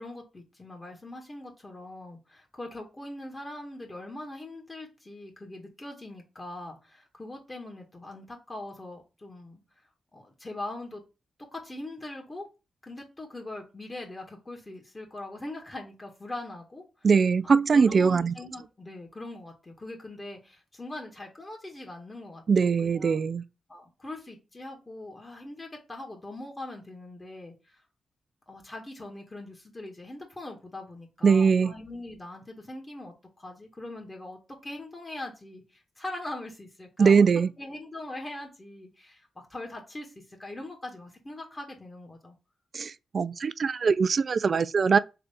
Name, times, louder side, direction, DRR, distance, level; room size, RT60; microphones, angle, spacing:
voice 1, 0.0-9.6 10.1-11.0 11.5-12.5 12.8-16.8 17.7-23.2 23.7-27.8 28.5-37.3 37.6-42.3, left 2 dB, 30° left, 1.6 m, -41 dB
voice 2, 17.0-18.3 22.5-23.4 31.2-31.7 37.0-37.5 42.7-45.0, right 5 dB, 55° right, 0.3 m, -22 dB
3.8 x 3.3 x 3.5 m
supercardioid pair, 40°, 0 cm